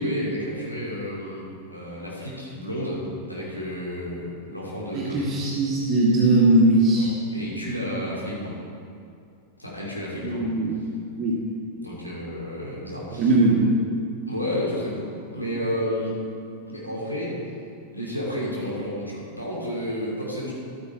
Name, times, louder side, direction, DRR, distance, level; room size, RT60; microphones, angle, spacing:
voice 1, 0.0-5.2 6.9-7.0 7.3-8.6 9.6-10.5 11.8-13.3 14.3-16.2 16.7-17.4 17.9-20.5, equal, 85° left, -5 dB, 2.9 m, -31 dB
voice 2, 4.9-7.1 10.2-10.7 11.2-11.4 13.1-13.7, right 2 dB, 30° right, -5 dB, 1.9 m, -20 dB
12.0 x 9.3 x 4.6 m, 2.4 s
figure-of-eight pair, 90°, 0 cm